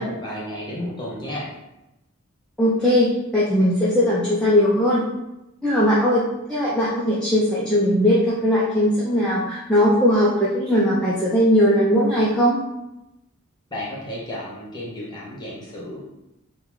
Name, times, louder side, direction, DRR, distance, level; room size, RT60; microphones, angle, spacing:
voice 1, 0.0-1.5 13.7-16.0, left 1 dB, 20° left, -5 dB, 0.9 m, -32 dB
voice 2, 2.6-5.0 5.6-6.2 6.5-12.6, equal, 5° left, -8 dB, 0.4 m, -19 dB
3.7 x 2.2 x 3.0 m, 0.93 s
head